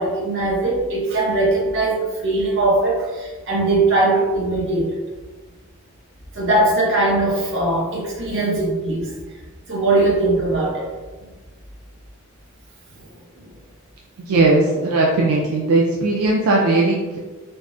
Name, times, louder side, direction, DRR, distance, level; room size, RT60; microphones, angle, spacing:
voice 1, 0.0-5.0 6.3-9.1 9.7-10.9 13.4-13.5, right 2 dB, 60° right, -3 dB, 0.8 m, -20 dB
voice 2, 14.3-17.2, right 2 dB, 80° right, -2 dB, 0.4 m, -18 dB
3.4 x 2.0 x 2.5 m, 1.3 s
head